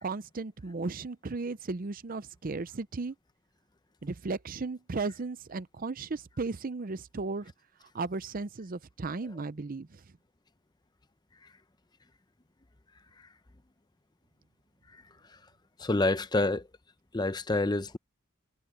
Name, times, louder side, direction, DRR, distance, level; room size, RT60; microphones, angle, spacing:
voice 1, 0.0-3.1 4.0-7.5 7.9-9.9, right 3 dB, 40° right, 0.6 m, -35 dB
voice 2, 15.8-16.7 17.1-18.0, left 2 dB, 20° left, 0.6 m, -27 dB
head